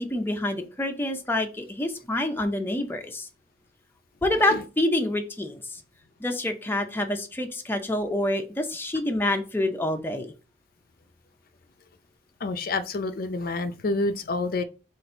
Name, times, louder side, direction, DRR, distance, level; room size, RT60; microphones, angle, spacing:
voice 1, 0.0-3.3 4.2-5.8 6.2-10.3, left 1 dB, 15° left, 0.6 m, -27 dB
voice 2, 12.4-14.6, left 3 dB, 55° left, 0.5 m, -28 dB
4.0 x 2.5 x 4.4 m
head